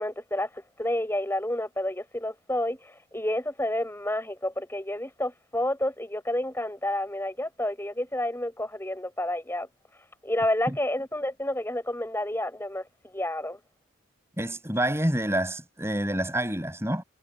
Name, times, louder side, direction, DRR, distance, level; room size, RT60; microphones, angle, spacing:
voice 1, 0.0-9.7 10.2-13.6, left 1 dB, 10° left, 6.8 m, -30 dB
voice 2, 14.4-17.0, right 1 dB, 10° right, 7.8 m, -27 dB
head